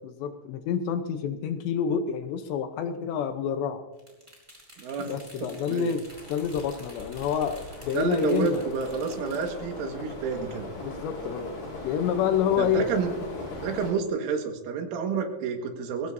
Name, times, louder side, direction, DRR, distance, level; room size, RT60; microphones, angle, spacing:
voice 1, 0.0-3.8 5.1-8.6 10.8-11.5 11.8-12.9, left 7 dB, 75° left, 8 dB, 2.8 m, -28 dB
sound 1, 4.0-9.5, equal, 5° right, 4.0 m, -48 dB
voice 2, 4.8-5.1 5.4-5.9 7.9-10.7 12.6-13.1 13.6-16.1, right 5 dB, 85° right, 4 dB, 4.1 m, -29 dB
sound 2, 6.1-13.9, left 2 dB, 60° left, 6.5 m, -40 dB
21.5 x 17.0 x 2.7 m, 1.1 s
omnidirectional pair, 5.6 m